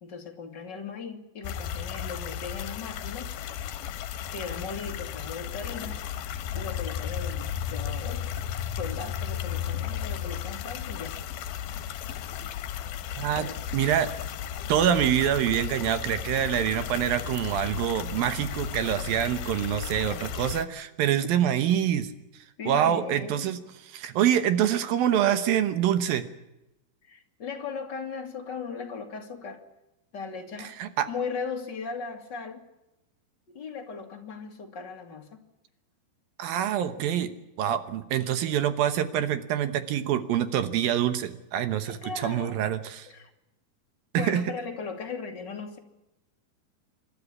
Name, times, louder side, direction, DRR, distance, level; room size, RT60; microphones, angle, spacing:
voice 1, 0.0-3.3 4.3-6.0 6.5-8.3 8.7-11.2 13.4-13.6 22.6-23.5 27.0-29.6 30.1-30.8 31.0-32.6 33.5-35.4 41.8-42.6 43.1-43.3 44.1-45.8, left 5 dB, 35° left, 3 dB, 2.1 m, -38 dB
sound 1, 1.4-20.6, left 9 dB, 75° left, 2.9 m, -34 dB
voice 2, 13.2-13.5 13.7-14.1 14.7-22.1 22.7-23.6 23.9-26.3 30.8-31.1 36.4-37.3 37.6-43.1 44.1-44.4, right 10 dB, 75° right, 11 dB, 2.8 m, -25 dB
28.0 x 12.5 x 9.8 m, 0.93 s
omnidirectional pair, 4.4 m